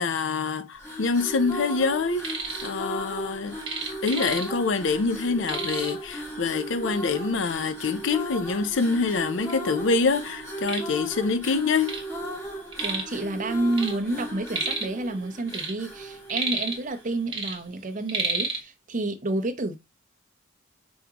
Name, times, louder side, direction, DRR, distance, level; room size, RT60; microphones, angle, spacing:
voice 1, 0.0-2.2 2.6-3.6 4.0-12.0, left 4 dB, 70° left, 0.5 m, -25 dB
sound 1, 0.7-17.2, right 1 dB, 15° left, 1.7 m, -37 dB
sound 2, 2.0-2.7 3.0-4.8 5.1-5.2 5.4-6.1 6.9-7.0 7.5-7.6 8.3-8.4 8.7-9.6 10.0-12.1 12.4-13.2 13.5-15.0 15.4-17.0 17.3-18.6, right 3 dB, 25° right, 1.4 m, -31 dB
voice 2, 12.8-19.8, right 2 dB, 40° right, 0.8 m, -29 dB
5.2 x 3.5 x 2.9 m
head